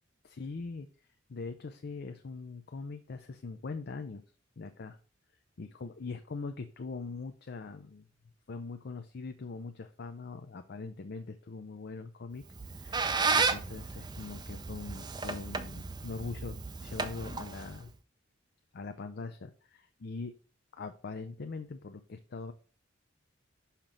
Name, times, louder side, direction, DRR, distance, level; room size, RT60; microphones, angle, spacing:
voice 1, 0.2-0.9 1.3-4.2 4.6-5.0 5.6-8.1 8.5-12.4 12.7-17.9 18.7-20.3 20.7-22.5, left 4 dB, 55° left, 7 dB, 0.5 m, -42 dB
Squeak, 12.4-17.9, right 4 dB, 20° right, 0.5 m, -33 dB
5.8 x 5.1 x 4.4 m, 0.37 s
head